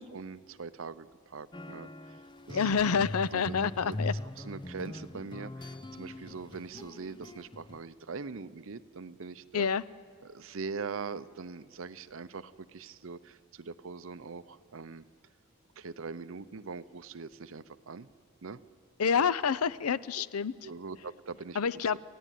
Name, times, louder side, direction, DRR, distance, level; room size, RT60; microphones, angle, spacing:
voice 1, 0.1-2.7 3.3-4.0 4.4-9.7 10.2-15.0 15.8-18.1 18.4-18.6 20.2-20.3 20.6-22.0, right 4 dB, 65° right, 13 dB, 0.7 m, -42 dB
sound 1, 1.5-7.8, left 2 dB, 20° left, 0.6 m, -41 dB
voice 2, 2.5-4.1 9.5-9.8 19.0-20.5 21.6-22.0, left 6 dB, 85° left, 18 dB, 0.6 m, -28 dB
28.0 x 15.0 x 9.3 m, 2.1 s
head